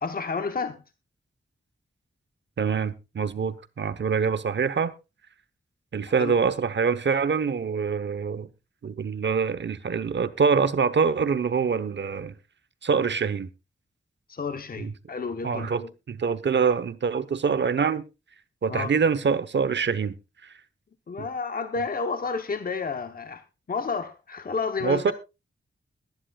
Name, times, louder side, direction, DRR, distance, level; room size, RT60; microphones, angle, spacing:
voice 1, 0.0-0.8 6.1-6.3 14.3-15.9 18.7-18.9 21.1-25.1, left 4 dB, 45° left, 0.9 m, -31 dB
voice 2, 2.6-4.9 5.9-8.5 8.8-12.3 12.8-13.5 14.8-14.9 15.4-18.0 18.6-20.2 20.4-20.5 24.8-25.1, right 5 dB, 65° right, 1.0 m, -25 dB
21.5 x 10.5 x 2.3 m
wide cardioid pair, 130°, 20 cm